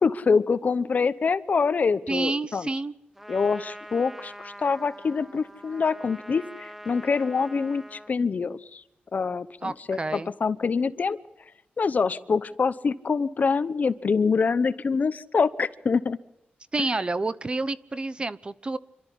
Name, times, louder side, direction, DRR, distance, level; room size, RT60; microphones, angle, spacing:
voice 1, 0.0-2.7 3.3-8.8 9.1-11.2 11.8-16.2, left 5 dB, 50° left, 15 dB, 0.9 m, -25 dB
voice 2, 2.1-2.9 9.6-10.3 16.7-18.8, right 3 dB, 30° right, 15 dB, 0.8 m, -29 dB
Trumpet, 3.2-8.2, equal, 5° right, 1.0 m, -44 dB
27.0 x 13.0 x 10.0 m, 0.94 s
wide cardioid pair, 110°, 3 cm